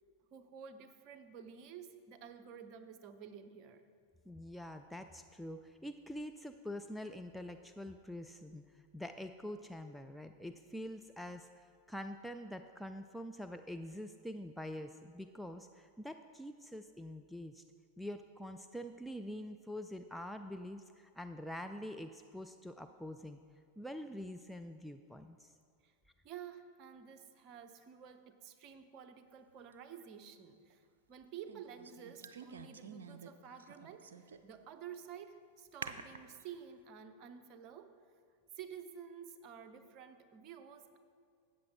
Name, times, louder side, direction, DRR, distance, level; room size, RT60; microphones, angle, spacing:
voice 1, 0.3-3.8 25.8-25.9 26.2-37.9 38.6-41.0, right 8 dB, 40° right, 8 dB, 0.7 m, -51 dB
voice 2, 4.3-17.6 18.0-23.4 23.8-25.5, left 1 dB, ahead, 5 dB, 0.3 m, -45 dB
sound 1, 29.7-29.8 31.5-33.3 33.6-34.6 34.9-35.0 35.8-36.4, right 6 dB, 65° right, 0.5 m, -48 dB
13.0 x 8.7 x 3.7 m, 2.4 s
figure-of-eight pair, 90°, 0 cm